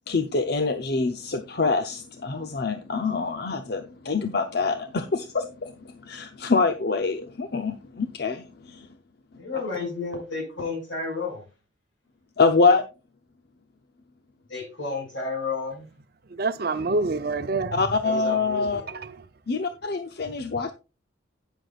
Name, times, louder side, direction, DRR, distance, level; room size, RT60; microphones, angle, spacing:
voice 1, 0.1-8.9 12.4-12.9 17.7-18.8 19.5-20.7, left 4 dB, 55° left, 0.7 m, -25 dB
voice 2, 9.4-11.4 14.5-15.9 18.0-18.9, left 4 dB, 80° left, 6.0 m, -32 dB
voice 3, 16.3-18.0 18.9-19.2 20.3-20.4, right 3 dB, 55° right, 0.7 m, -27 dB
11.5 x 9.2 x 2.4 m
head